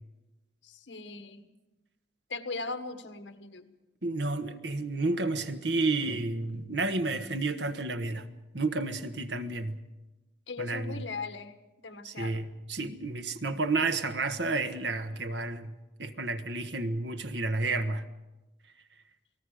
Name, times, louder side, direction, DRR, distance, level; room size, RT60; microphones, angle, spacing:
voice 1, 0.6-1.5 2.3-3.7 10.5-12.4, left 4 dB, 85° left, 1.7 m, -39 dB
voice 2, 4.0-8.3 8.5-9.8 10.6-11.0 12.0-15.7 16.0-18.0, right 3 dB, 70° right, 1.4 m, -31 dB
29.0 x 19.5 x 5.1 m
head